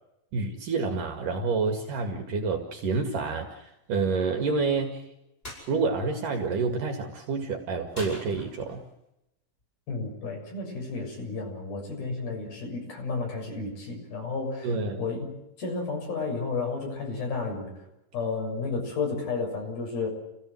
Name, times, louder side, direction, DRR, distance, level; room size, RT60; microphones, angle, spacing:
voice 1, 0.3-5.1 5.7-8.8 14.6-15.0, right 4 dB, 65° right, 4 dB, 3.5 m, -28 dB
sound 1, 5.4-5.7 7.9-8.9, equal, 15° left, 8.1 m, -41 dB
voice 2, 9.9-14.7 15.0-15.3 15.6-17.7 18.1-20.1, left 4 dB, 85° left, 1 dB, 8.8 m, -32 dB
29.5 x 17.0 x 7.7 m, 0.87 s
omnidirectional pair, 4.1 m